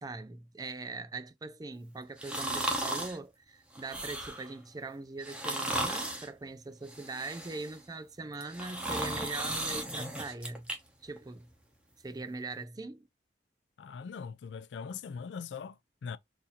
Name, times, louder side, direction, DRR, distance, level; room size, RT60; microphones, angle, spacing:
voice 1, 0.0-10.7 11.0-11.5 12.0-13.1, right 3 dB, 20° right, 0.4 m, -41 dB
sound 1, 2.2-3.2 3.7-4.5 5.2-6.3 6.9-7.8 8.3-10.8 11.2-11.3, right 1 dB, 5° right, 0.8 m, -35 dB
voice 2, 13.8-16.2, left 6 dB, 85° left, 0.4 m, -41 dB
3.9 x 2.6 x 2.7 m
head